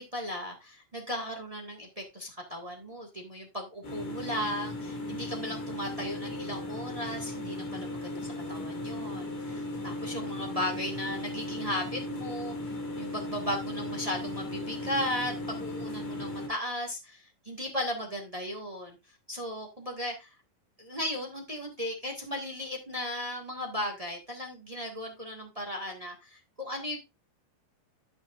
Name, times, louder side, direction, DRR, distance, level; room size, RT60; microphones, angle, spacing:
voice 1, 0.0-19.0 19.3-20.3 20.8-27.0, left 1 dB, 50° right, 0.4 m, -36 dB
sound 1, 3.8-16.5, left 1 dB, 55° left, 3.6 m, -37 dB
14.0 x 6.2 x 2.5 m
omnidirectional pair, 3.9 m